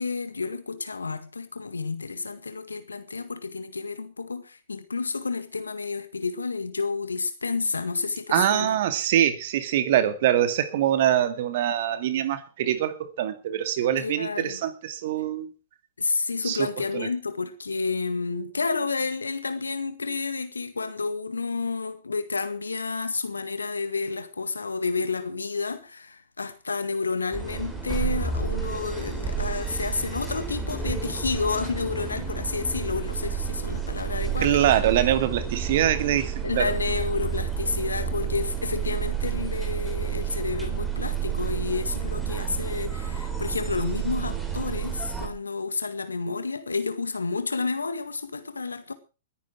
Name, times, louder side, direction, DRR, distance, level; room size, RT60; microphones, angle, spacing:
voice 1, 0.0-8.8 14.0-14.6 16.0-34.7 36.4-48.9, left 4 dB, 85° left, 1.9 m, -30 dB
voice 2, 8.3-15.5 16.4-16.6 16.9-17.1 34.4-36.7, right 11 dB, 55° right, 2.2 m, -24 dB
Approaching Sheffield, 27.3-45.3, right 7 dB, 5° right, 4.2 m, -30 dB
20.0 x 10.0 x 4.7 m
hypercardioid pair, 115°, 0 cm